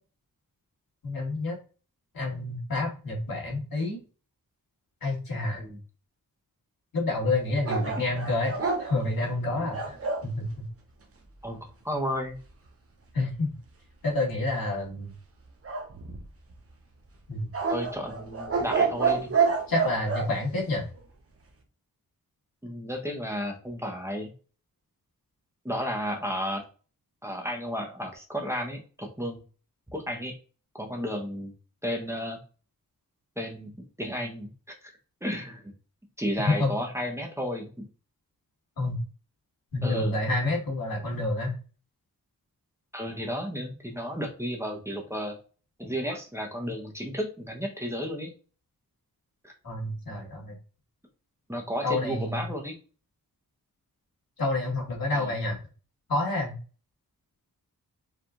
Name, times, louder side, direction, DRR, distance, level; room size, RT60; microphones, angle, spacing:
voice 1, 1.0-1.6 2.1-4.0 5.0-5.6 6.9-10.0 10.2-10.5 13.1-13.5 14.0-15.1 17.3-17.5 19.7-20.9 36.6-36.7 38.8-39.0 39.7-41.5 49.6-50.5 51.8-52.5 54.4-55.6 56.1-56.6, left 2 dB, 75° left, -2 dB, 2.0 m, -28 dB
sound 1, 7.6-10.3 15.6-16.5 17.5-20.3, right 5 dB, 40° right, 0.9 m, -28 dB
voice 2, 11.4-12.4 17.7-19.3 22.6-24.3 25.6-26.6 27.2-29.4 29.9-30.3 30.7-31.5 31.8-32.4 33.4-33.7 34.0-34.5 34.8-34.9 35.2-35.7 36.2-37.8 39.8-40.1 42.9-45.4 45.8-48.3 49.4-49.5 51.5-52.8 55.1-55.3, equal, 10° right, 1 dB, 1.0 m, -33 dB
4.8 x 3.6 x 2.5 m, 0.36 s
wide cardioid pair, 90°, 35 cm